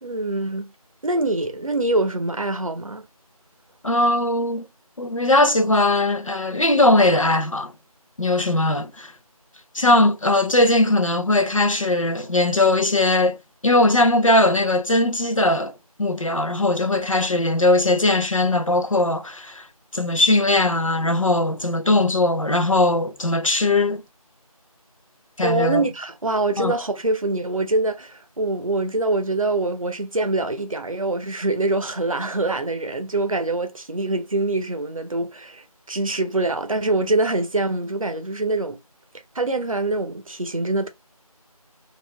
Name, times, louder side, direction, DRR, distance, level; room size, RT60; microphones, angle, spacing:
voice 1, 0.0-0.7 1.0-3.1 25.4-38.8 39.3-40.9, right 2 dB, 60° right, 0.7 m, -24 dB
voice 2, 3.8-4.6 5.0-7.7 8.2-9.1 9.7-13.4 13.6-15.7 16.0-19.7 19.9-24.0 25.4-25.8 26.6-26.7, left 2 dB, 60° left, 0.6 m, -19 dB
2.7 x 2.4 x 3.2 m
figure-of-eight pair, 175°, 19 cm